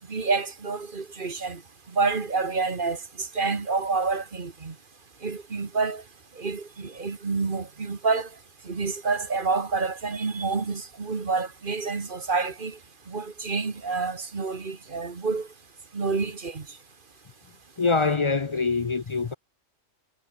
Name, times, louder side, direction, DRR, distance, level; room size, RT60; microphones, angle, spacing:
voice 1, 0.1-1.6 1.9-4.7 5.2-6.0 6.4-8.3 8.6-12.8 13.1-15.5 15.9-16.7, right 4 dB, 40° right, 1.7 m, -28 dB
voice 2, 17.8-19.3, left 4 dB, 40° left, 0.4 m, -24 dB
omnidirectional pair, 1.3 m